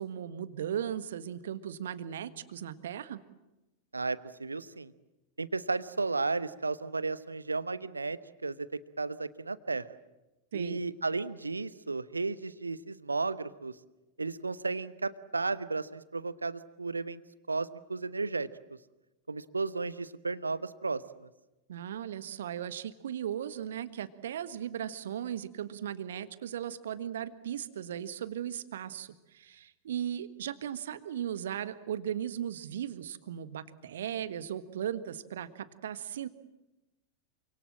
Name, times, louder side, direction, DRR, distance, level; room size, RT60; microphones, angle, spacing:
voice 1, 0.0-3.2 10.5-10.8 21.7-36.3, right 10 dB, 60° right, 13 dB, 1.5 m, -37 dB
voice 2, 3.9-4.9 5.4-9.8 10.5-13.7 14.2-17.2 17.5-18.5 19.3-21.0, right 3 dB, 80° right, 16 dB, 1.1 m, -34 dB
28.5 x 25.5 x 7.6 m, 1.0 s
figure-of-eight pair, 90°, 0 cm